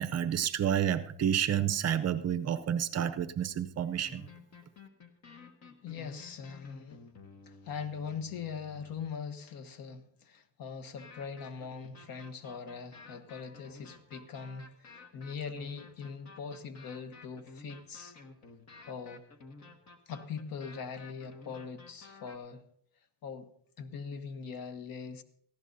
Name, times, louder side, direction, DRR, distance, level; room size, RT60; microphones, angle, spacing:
voice 1, 0.0-4.2, right 9 dB, 40° right, 0.6 m, -30 dB
sound 1, 3.8-9.1 11.0-22.4, left 3 dB, 40° left, 1.5 m, -53 dB
voice 2, 5.8-7.1 7.4-18.2 18.9-19.2 20.1-22.6 23.2-23.5 23.8-25.2, left 6 dB, 55° left, 1.2 m, -41 dB
18.0 x 15.0 x 2.7 m
cardioid pair, 125°, 41 cm